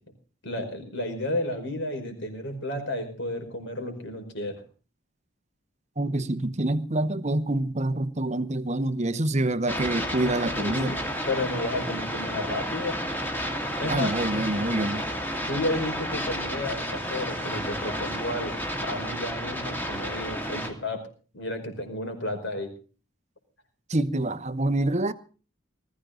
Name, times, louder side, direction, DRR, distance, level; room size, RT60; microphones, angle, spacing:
voice 1, 0.4-4.6 10.6-11.0 11.3-13.0 13.8-14.1 14.4-14.5 15.5-18.6 18.8-21.0 21.3-22.7, left 1 dB, 55° left, 5.3 m, -32 dB
voice 2, 6.0-11.0 13.9-15.0 23.9-25.1, right 1 dB, 30° right, 0.9 m, -26 dB
sound 1, 9.7-20.7, equal, 10° left, 2.5 m, -31 dB
20.0 x 15.0 x 3.9 m
head